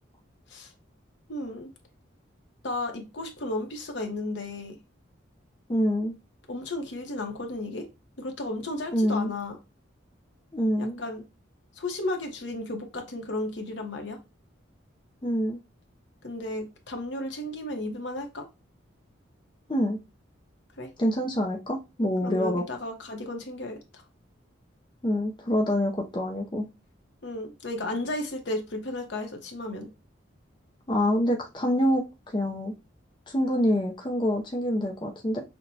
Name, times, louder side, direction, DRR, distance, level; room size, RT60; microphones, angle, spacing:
voice 1, 1.3-1.7 2.6-4.7 6.5-7.9 8.2-9.6 10.8-11.2 11.8-14.2 16.2-18.5 20.8-20.9 22.2-24.0 27.2-29.9, left 2 dB, 65° left, 0.9 m, -34 dB
voice 2, 5.7-6.1 8.9-9.3 10.5-11.0 15.2-15.6 19.7-20.0 21.0-22.6 25.0-26.6 30.9-32.0 32.3-32.7 33.3-35.4, equal, 25° left, 0.4 m, -26 dB
5.9 x 2.1 x 2.7 m
head